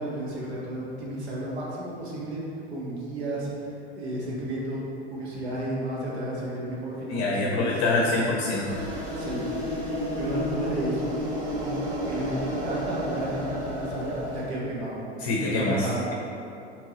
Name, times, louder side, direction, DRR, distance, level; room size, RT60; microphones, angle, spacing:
voice 1, 0.0-2.4 2.7-3.5 3.9-4.8 5.1-8.2 9.1-11.2 11.6-11.8 12.0-16.1, right 1 dB, 70° right, -5 dB, 1.1 m, -33 dB
voice 2, 7.1-8.8 15.2-16.1, left 2 dB, 45° left, -2 dB, 0.6 m, -25 dB
sound 1, 8.6-14.4, equal, 45° right, 1.3 m, -31 dB
4.4 x 3.6 x 3.0 m, 2.6 s
figure-of-eight pair, 80°, 34 cm